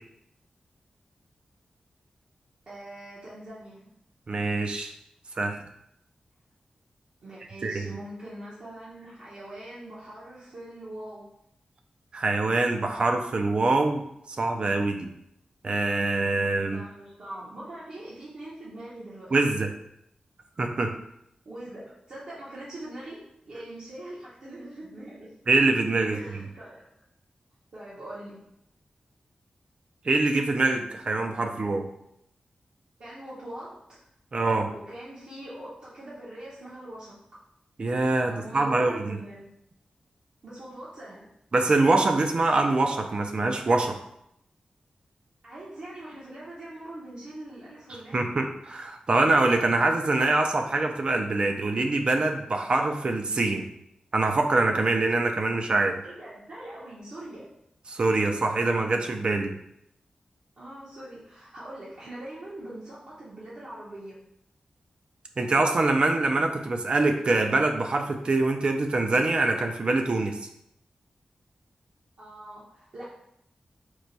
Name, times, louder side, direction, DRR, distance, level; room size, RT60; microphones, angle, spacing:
voice 1, 2.7-3.9 7.2-11.3 16.7-19.3 21.4-25.3 26.0-26.9 27.7-28.4 33.0-34.0 34.7-37.2 38.2-39.5 40.4-41.3 45.4-48.3 56.0-57.6 60.6-64.2 72.2-73.0, right 1 dB, 60° right, -9 dB, 1.0 m, -42 dB
voice 2, 4.3-4.9 5.4-5.6 7.6-7.9 12.1-14.0 14.4-15.1 15.6-16.8 19.3-19.7 20.6-20.9 25.5-26.4 30.0-31.9 34.3-34.7 37.8-39.2 41.5-44.0 48.1-53.7 54.1-56.0 57.9-59.6 65.4-70.4, right 2 dB, 45° right, 4 dB, 0.4 m, -24 dB
4.6 x 2.2 x 3.9 m, 0.76 s
wide cardioid pair, 145°, 2 cm